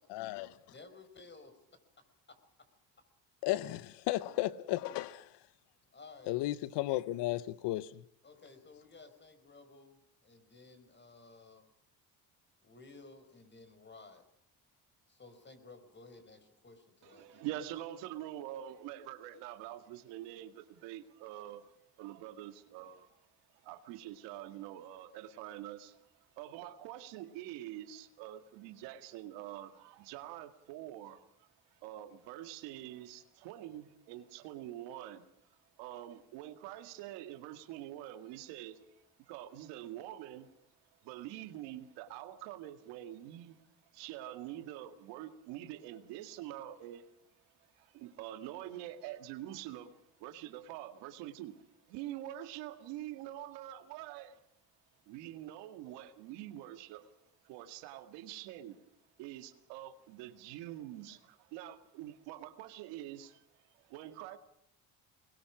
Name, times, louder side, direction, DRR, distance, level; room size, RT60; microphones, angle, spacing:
voice 1, 0.1-0.5 3.4-5.3 6.3-8.0, left 16 dB, 80° left, 0.9 m, -34 dB
voice 2, 0.7-1.5 5.9-6.3 8.2-11.7 12.6-14.2 15.1-17.6, left 3 dB, 25° left, 5.1 m, -55 dB
voice 3, 17.0-23.2 23.6-31.5 31.8-38.9 39.3-40.5 41.0-43.6 43.9-47.1 47.8-54.4 55.1-57.1 57.4-58.8 59.2-63.4 63.7-64.4, right 13 dB, 85° right, 2.0 m, -46 dB
24.0 x 20.5 x 6.1 m
supercardioid pair, 95°, 41 cm